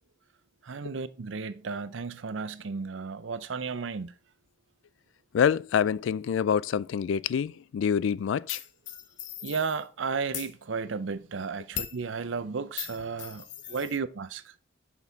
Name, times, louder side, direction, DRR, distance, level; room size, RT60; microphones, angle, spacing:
voice 1, 0.6-4.1 9.4-14.4, right 5 dB, 90° right, 0.6 m, -33 dB
voice 2, 5.3-8.6, left 7 dB, 85° left, 0.3 m, -26 dB
sound 1, 8.5-9.8 10.2-10.5 11.7-12.0 12.8-14.0, left 10 dB, 65° left, 0.8 m, -38 dB
6.0 x 5.8 x 3.9 m
head